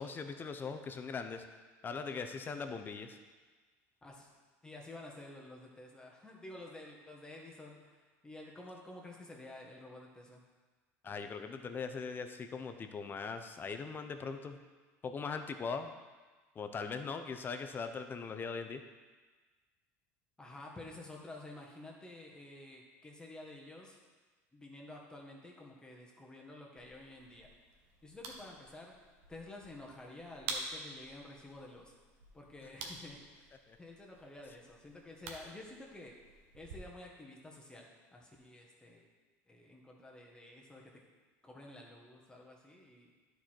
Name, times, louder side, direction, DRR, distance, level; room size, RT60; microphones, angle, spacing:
voice 1, 0.0-1.4 1.8-3.2 11.0-14.6 15.0-15.9 16.6-18.8 33.7-33.8, left 5 dB, 30° left, 8 dB, 0.7 m, -40 dB
voice 2, 4.6-10.4 20.4-24.0 24.5-27.5 28.0-28.9 29.3-31.9 32.3-39.0 39.5-40.9 41.4-43.1, left 2 dB, 10° left, -1 dB, 1.4 m, -51 dB
sound 1, 26.8-36.8, right 3 dB, 85° right, 1.2 m, -49 dB
10.5 x 4.7 x 4.4 m, 1.3 s
supercardioid pair, 115°, 7 cm